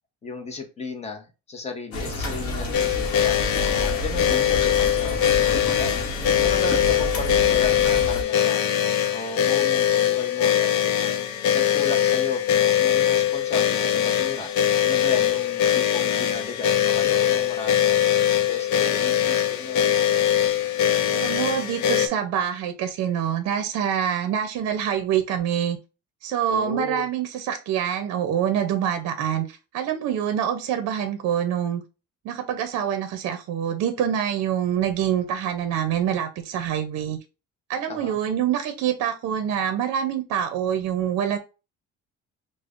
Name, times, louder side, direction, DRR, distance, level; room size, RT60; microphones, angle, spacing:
voice 1, 0.2-6.1 6.4-8.7 9.1-11.3 11.5-14.5 14.8-18.1 18.5-20.0 26.5-27.1 37.9-38.2, left 4 dB, 20° left, 4 dB, 0.6 m, -34 dB
sound 1, 1.9-8.2, left 1 dB, 45° left, 0.9 m, -30 dB
sound 2, 2.7-22.1, left 10 dB, 70° left, 0.5 m, -22 dB
voice 2, 21.1-25.8 26.2-31.8 32.2-37.2 37.7-41.4, right 9 dB, 60° right, 7 dB, 0.5 m, -25 dB
5.1 x 2.1 x 2.4 m, 0.30 s
cardioid pair, 160°, 31 cm